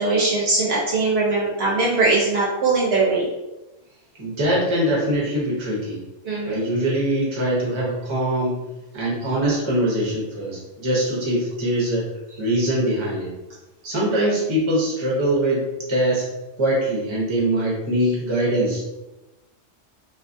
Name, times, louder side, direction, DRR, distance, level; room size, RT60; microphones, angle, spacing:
voice 1, 0.0-3.3 6.2-6.7, right 3 dB, 65° right, -5 dB, 0.8 m, -21 dB
voice 2, 4.2-6.0 6.5-8.6 8.9-12.1 12.4-13.3 13.8-16.3 16.6-18.8, right 1 dB, 30° right, -4 dB, 0.6 m, -22 dB
2.5 x 2.3 x 2.5 m, 1.0 s
omnidirectional pair, 1.3 m